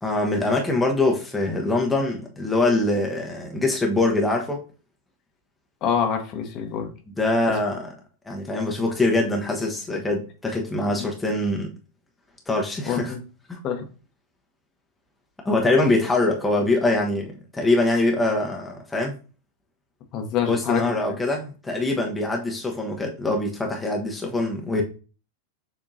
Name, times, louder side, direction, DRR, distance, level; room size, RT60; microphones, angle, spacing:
voice 1, 0.0-4.6 7.2-7.9 8.3-11.7 12.5-13.1 13.5-13.6 15.4-19.1 20.4-24.8, left 2 dB, 10° left, 0.8 m, -23 dB
voice 2, 5.8-6.9 12.9-13.2 13.6-13.8 20.1-20.9, left 7 dB, 35° left, 0.9 m, -25 dB
6.6 x 2.8 x 2.6 m
figure-of-eight pair, 90°, 0 cm